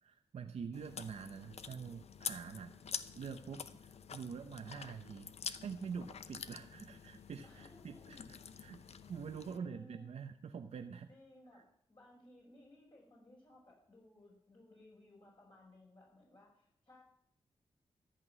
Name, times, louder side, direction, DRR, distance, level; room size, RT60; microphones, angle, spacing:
voice 1, 0.0-2.7 3.2-5.3 5.6-8.8 9.1-11.1 11.5-11.6, right 6 dB, 80° right, 5 dB, 0.8 m, -46 dB
Chewing mastication, 0.7-9.6, left 6 dB, 75° left, 0.7 m, -47 dB
voice 2, 2.4-2.8 4.7-4.9 7.4-8.4 9.4-10.1 11.1-17.0, left 1 dB, 45° left, -5 dB, 6.3 m, -61 dB
14.0 x 6.0 x 9.8 m, 0.68 s
cardioid pair, 55°, 11 cm